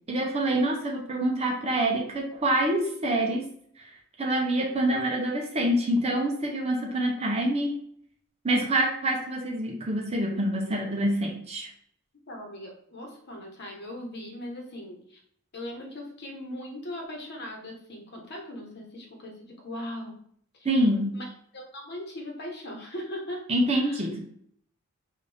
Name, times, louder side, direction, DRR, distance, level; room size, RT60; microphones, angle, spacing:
voice 1, 0.1-3.5 3.8-3.9 4.2-7.7 8.4-11.7 20.6-21.2 23.5-24.2, right 1 dB, 30° right, 0 dB, 0.7 m, -26 dB
voice 2, 12.3-15.2 15.5-20.2 20.5-20.7 21.1-21.2 21.5-23.5 23.7-24.1, left 1 dB, 55° left, 1 dB, 1.1 m, -39 dB
5.2 x 2.6 x 3.3 m, 0.65 s
head